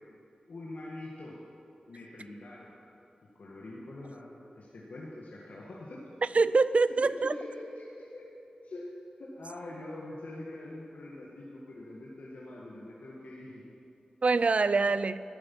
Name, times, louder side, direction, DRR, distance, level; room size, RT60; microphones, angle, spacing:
voice 1, 0.5-1.4 1.9-2.8 3.4-6.2 7.0-8.2 8.6-8.9 9.2-13.6, left 2 dB, 75° left, -5 dB, 1.7 m, -44 dB
voice 2, 6.3-7.3 14.2-15.2, right 4 dB, 55° right, 15 dB, 0.4 m, -24 dB
12.5 x 9.9 x 7.2 m, 2.8 s
cardioid pair, 60°, 3 cm